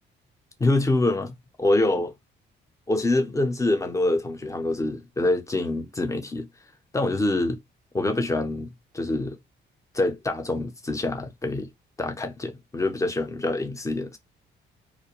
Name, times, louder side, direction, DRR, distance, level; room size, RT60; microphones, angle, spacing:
voice 1, 0.6-2.1 2.9-6.5 6.9-7.6 7.9-9.4 9.9-11.7 12.0-14.2, left 2 dB, 15° left, 0.6 m, -25 dB
2.4 x 2.1 x 2.9 m
cardioid pair, 90°, 20 cm